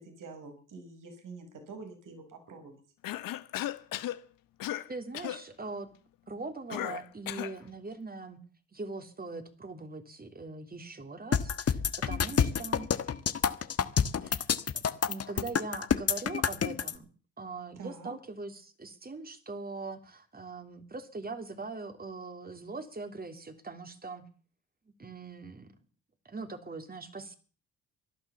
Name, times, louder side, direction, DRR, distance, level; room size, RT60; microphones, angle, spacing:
voice 1, 0.0-2.7 17.8-18.1, right 4 dB, 60° right, 6 dB, 6.0 m, -46 dB
Cough, 3.0-4.2 4.6-4.9 5.1-5.4 6.7-7.6, left 14 dB, 70° left, 1.3 m, -35 dB
voice 2, 4.9-5.9 6.3-8.4 8.7-12.9 13.8-14.5 15.0-17.1 17.4-24.2 25.0-25.7 26.2-27.3, right 3 dB, 25° right, 8 dB, 3.2 m, -41 dB
sound 1, 11.3-16.9, left 7 dB, 45° left, 1.5 m, -28 dB
17.5 x 11.5 x 7.1 m, 0.41 s
supercardioid pair, 60°, 35 cm